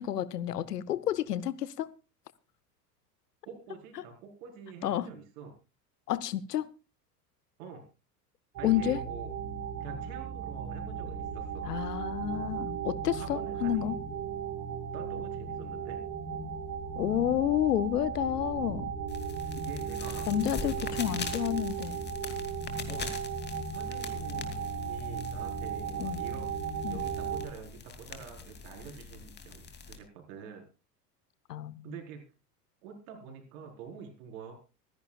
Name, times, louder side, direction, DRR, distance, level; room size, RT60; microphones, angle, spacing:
voice 1, 0.0-1.9 4.8-5.1 6.1-6.7 8.6-9.0 11.6-14.0 16.9-18.9 20.3-22.0 26.0-26.2 26.8-27.0 31.5-31.8, left 11 dB, 75° left, 1.0 m, -30 dB
voice 2, 3.4-5.5 7.6-7.8 8.6-9.3 9.8-11.7 13.1-13.9 14.9-16.0 19.5-21.1 22.9-23.1 23.7-26.5 26.9-30.7 31.8-32.2 32.8-34.5, right 6 dB, 55° right, 4.7 m, -46 dB
sound 1, 8.6-27.5, right 6 dB, 35° right, 3.0 m, -36 dB
sound 2, 19.1-30.0, left 5 dB, 20° left, 2.6 m, -43 dB
25.0 x 11.0 x 2.4 m
figure-of-eight pair, 80°, 48 cm